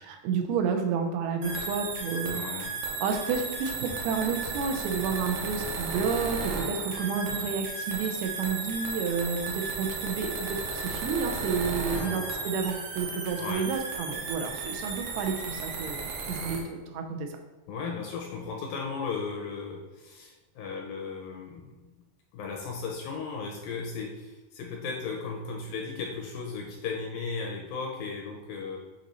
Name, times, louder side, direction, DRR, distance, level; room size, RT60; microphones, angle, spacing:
voice 1, 0.0-2.7 3.0-16.0 16.3-17.3, right 5 dB, 90° right, 4 dB, 2.7 m, -30 dB
sound 1, 1.4-16.6, right 4 dB, 70° right, 2.4 m, -34 dB
voice 2, 2.3-2.8 11.9-12.2 13.4-13.6 17.7-21.9 22.3-28.8, left 4 dB, 80° left, 0 dB, 2.2 m, -36 dB
8.6 x 3.0 x 4.1 m, 1.1 s
omnidirectional pair, 4.5 m